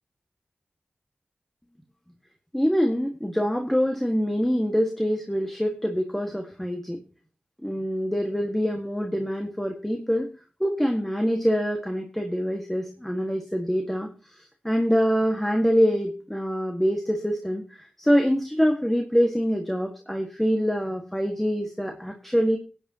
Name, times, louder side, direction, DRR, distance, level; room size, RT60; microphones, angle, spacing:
voice 1, 2.5-7.0 7.6-10.3 10.6-14.1 14.6-22.6, equal, 5° left, 3 dB, 1.6 m, -25 dB
18.5 x 9.2 x 2.8 m, 0.35 s
cardioid pair, 55°, 3 cm